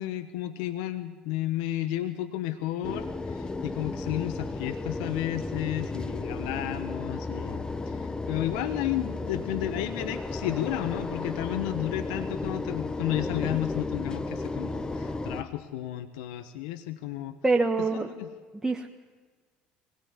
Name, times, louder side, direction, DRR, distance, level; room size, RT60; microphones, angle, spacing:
voice 1, 0.0-17.4 17.8-18.3, left 14 dB, 80° left, 11 dB, 1.1 m, -32 dB
sound 1, 2.8-15.4, left 3 dB, 20° left, 1.2 m, -34 dB
voice 2, 17.4-18.1 18.6-18.9, right 3 dB, 10° right, 2 dB, 1.5 m, -25 dB
23.0 x 18.0 x 9.7 m, 1.5 s
hypercardioid pair, 75°, 4 cm